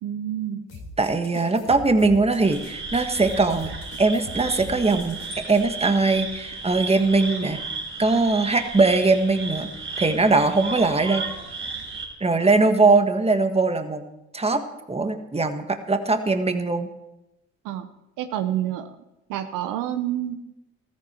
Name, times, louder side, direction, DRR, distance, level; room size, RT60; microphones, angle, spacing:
voice 1, 0.0-0.8 12.5-12.7 17.6-17.9 18.2-19.0 19.3-20.4, right 11 dB, 75° right, 9 dB, 1.0 m, -28 dB
sound 1, 0.7-5.6, left 2 dB, 80° left, 3.2 m, -41 dB
voice 2, 1.0-3.7 4.0-7.6 8.0-9.7 10.0-11.3 12.2-14.0 14.3-16.9, right 3 dB, 20° right, 7 dB, 1.6 m, -21 dB
sound 2, 2.4-12.1, right 3 dB, 40° right, 4.3 m, -34 dB
14.0 x 14.0 x 4.6 m, 0.92 s
supercardioid pair, 60°, 32 cm